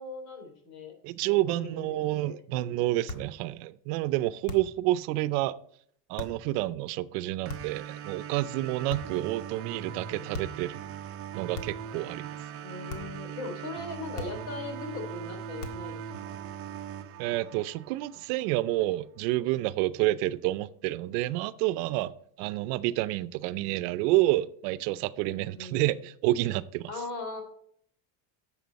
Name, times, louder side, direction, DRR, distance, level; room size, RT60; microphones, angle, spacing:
voice 1, 0.0-0.9 1.2-2.4 12.6-16.4 25.4-26.0 26.9-27.4, left 3 dB, 75° left, 3.7 m, -39 dB
voice 2, 1.0-5.6 6.1-10.8 11.3-12.4 17.2-22.1 22.4-26.9, right 16 dB, 70° right, 0.7 m, -29 dB
sound 1, 3.1-3.4 4.5-4.8 6.2-6.4 7.5-7.9 8.9-9.3 10.3-10.7 11.5-11.9 12.9-13.2 14.2-14.6 15.6-16.0, left 3 dB, 55° left, 1.9 m, -40 dB
sound 2, 7.5-18.4, right 8 dB, 30° right, 0.6 m, -40 dB
10.5 x 7.3 x 4.1 m
cardioid pair, 145°, 49 cm